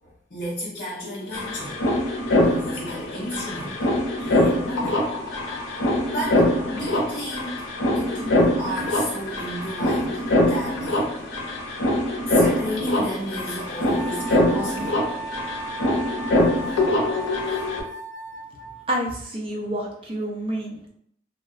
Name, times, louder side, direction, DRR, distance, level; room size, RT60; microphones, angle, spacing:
voice 1, 0.0-1.8 2.4-3.9 4.2-5.1 5.7-11.2 12.3-15.0, equal, 50° left, -9 dB, 0.6 m, -33 dB
sound 1, 0.8-0.9 1.0-17.8, left 1 dB, 90° left, 0.6 m, -23 dB
Wind instrument woodwind instrument, 13.9-18.9, equal, 85° right, 0.5 m, -35 dB
voice 2, 18.9-20.9, right 1 dB, 30° right, -1 dB, 0.5 m, -28 dB
2.8 x 2.0 x 2.4 m, 0.66 s
head